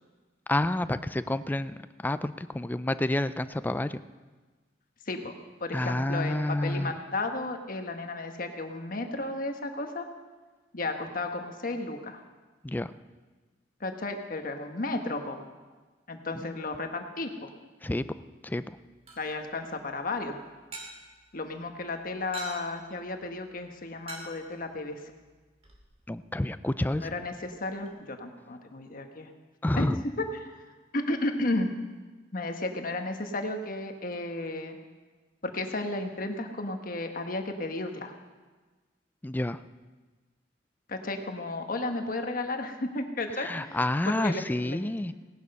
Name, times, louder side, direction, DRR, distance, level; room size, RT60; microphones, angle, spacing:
voice 1, 0.5-4.0 5.7-6.9 12.6-12.9 16.4-16.5 17.8-18.1 18.4-18.6 26.1-27.1 29.6-30.0 39.2-39.6 43.4-45.1, left 1 dB, 10° left, 13 dB, 0.4 m, -29 dB
voice 2, 5.1-10.0 10.7-12.2 13.8-15.4 16.1-17.5 19.2-20.4 21.3-25.0 27.0-29.3 29.8-29.9 30.2-30.5 30.9-31.7 32.3-34.8 35.4-38.1 40.9-43.8 44.0-45.1, left 2 dB, 55° left, 5 dB, 1.3 m, -33 dB
sound 1, 18.6-27.9, right 2 dB, 35° right, 2.6 m, -49 dB
17.5 x 11.0 x 5.5 m, 1.3 s
head